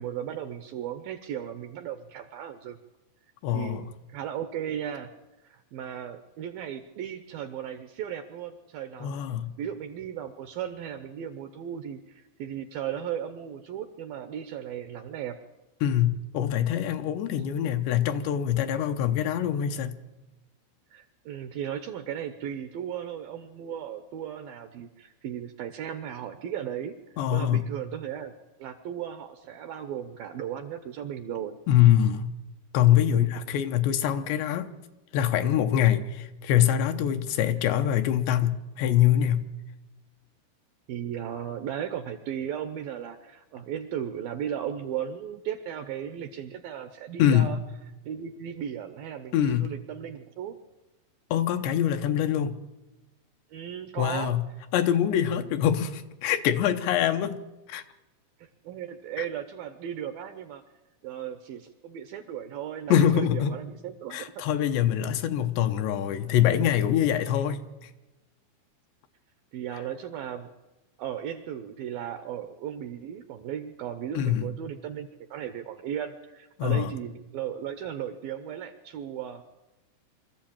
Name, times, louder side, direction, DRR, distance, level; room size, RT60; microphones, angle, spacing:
voice 1, 0.0-2.8 3.5-3.8 4.1-5.1 5.5-9.2 9.6-15.4 20.9-27.0 27.3-28.3 28.6-31.6 33.1-33.3 40.9-47.6 48.0-50.6 53.5-54.4 58.4-60.6 61.0-64.3 69.5-70.5 71.0-79.4, right 9 dB, 75° right, 2.2 m, -36 dB
voice 2, 3.4-3.9 9.0-9.5 15.8-20.0 27.2-27.6 31.7-32.3 32.7-34.7 35.1-39.5 47.2-47.6 49.3-49.7 51.3-52.6 54.0-54.4 54.7-57.4 57.7-57.8 62.9-63.6 64.1-67.9 74.2-74.5 76.6-76.9, left 10 dB, 80° left, 3.1 m, -24 dB
24.0 x 14.0 x 8.8 m
omnidirectional pair, 5.1 m